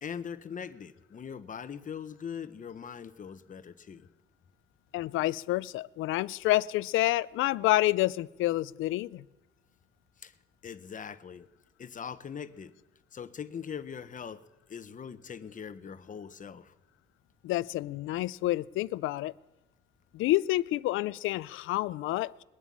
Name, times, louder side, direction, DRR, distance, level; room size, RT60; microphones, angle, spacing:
voice 1, 0.0-4.1 10.2-10.3 10.6-11.5 11.8-12.7 13.1-14.4 14.7-16.7, left 7 dB, 40° left, 0.9 m, -41 dB
voice 2, 4.9-9.2 17.4-19.3 20.1-22.4, left 16 dB, 90° left, 0.4 m, -28 dB
21.0 x 7.2 x 8.6 m
cardioid pair, 90°, 20 cm